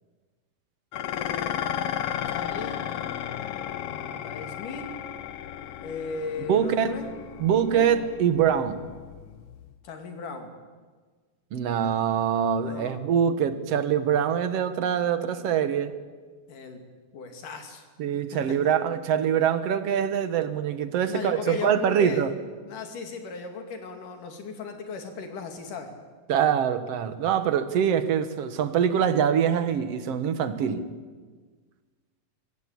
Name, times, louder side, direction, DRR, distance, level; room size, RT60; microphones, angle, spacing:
Dishes pots and pans, 0.9-9.7, left 10 dB, 70° left, 1.5 m, -34 dB
voice 1, 2.3-2.8 3.9-4.9 5.8-7.1 7.4-7.9 9.8-10.5 12.7-13.0 16.5-16.8 17.1-17.9 18.3-18.7 21.1-22.3 22.7-25.9, left 5 dB, 90° left, 5 dB, 4.0 m, -36 dB
voice 2, 6.5-6.9 7.4-8.8 11.5-15.9 18.0-22.3 26.3-30.8, right 8 dB, 60° right, 11 dB, 2.0 m, -24 dB
24.0 x 16.0 x 8.6 m, 1.5 s
omnidirectional pair, 3.6 m